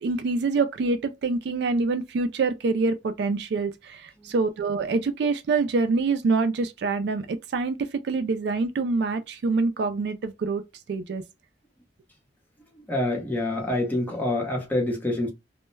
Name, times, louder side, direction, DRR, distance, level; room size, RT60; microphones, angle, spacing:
voice 1, 0.0-10.6 10.9-11.2, right 3 dB, 65° right, 0.3 m, -26 dB
voice 2, 12.9-15.3, left 1 dB, 10° left, 0.8 m, -26 dB
2.2 x 2.1 x 3.1 m
head